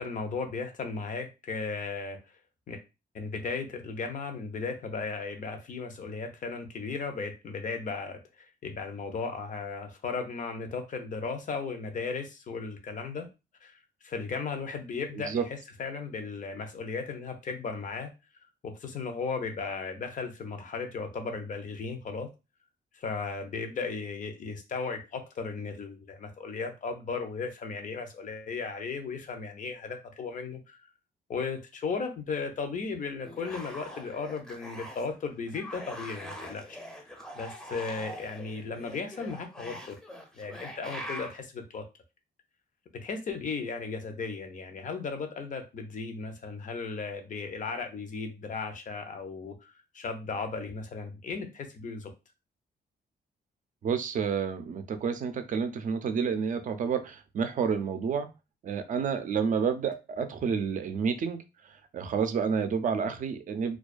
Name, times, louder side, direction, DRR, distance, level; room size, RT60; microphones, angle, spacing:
voice 1, 0.0-2.2 2.7-2.8 3.1-13.3 13.6-13.7 14.0-18.1 18.6-22.3 22.9-30.8 31.3-36.8 37.3-40.0 40.3-41.8 43.0-52.1, left 4 dB, 50° left, 6 dB, 0.6 m, -36 dB
voice 2, 15.1-15.4 53.8-58.3 58.6-61.4 61.7-63.8, right 6 dB, 50° right, 9 dB, 0.4 m, -29 dB
sound 1, 33.2-35.1 35.5-41.4, equal, 5° left, 0.6 m, -43 dB
2.3 x 2.2 x 2.4 m, 0.27 s
cardioid pair, 105°, 17 cm